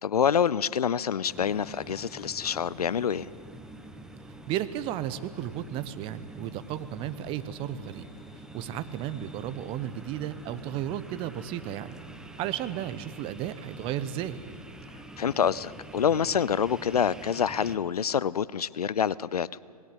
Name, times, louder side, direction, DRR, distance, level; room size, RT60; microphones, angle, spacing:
voice 1, 0.0-3.3 15.2-19.5, left 8 dB, 70° left, 21 dB, 0.7 m, -26 dB
sound 1, 1.3-17.8, right 1 dB, 5° right, 1.2 m, -46 dB
voice 2, 4.5-8.1 8.5-12.0 12.4-14.4, right 11 dB, 25° right, 13 dB, 1.0 m, -34 dB
25.5 x 20.0 x 8.9 m, 2.3 s
figure-of-eight pair, 120°, 20 cm